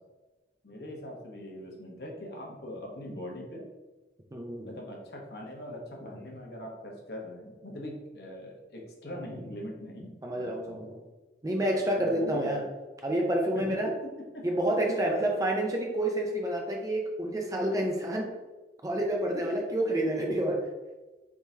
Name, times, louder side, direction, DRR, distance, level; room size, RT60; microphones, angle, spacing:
voice 1, 0.6-3.6 4.6-10.1 10.4-10.9 11.6-12.5 13.6-14.5 15.1-15.3 19.5-19.6, left 1 dB, 60° left, -1 dB, 1.0 m, -41 dB
voice 2, 4.3-4.7 9.1-9.2 10.2-11.0 11.4-12.6 13.0-13.9 14.4-18.3 18.8-20.7, right 1 dB, 20° right, 1 dB, 0.5 m, -29 dB
4.6 x 3.6 x 2.7 m, 1.1 s
head